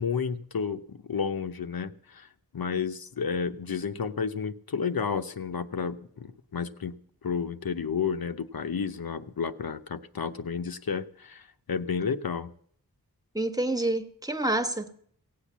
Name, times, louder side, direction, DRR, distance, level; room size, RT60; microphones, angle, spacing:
voice 1, 0.0-2.3 2.5-7.0 7.2-12.5, left 6 dB, 70° left, 0.9 m, -31 dB
voice 2, 13.3-15.0, right 1 dB, 10° right, 1.3 m, -28 dB
17.0 x 8.5 x 7.4 m
wide cardioid pair, 80°, 37 cm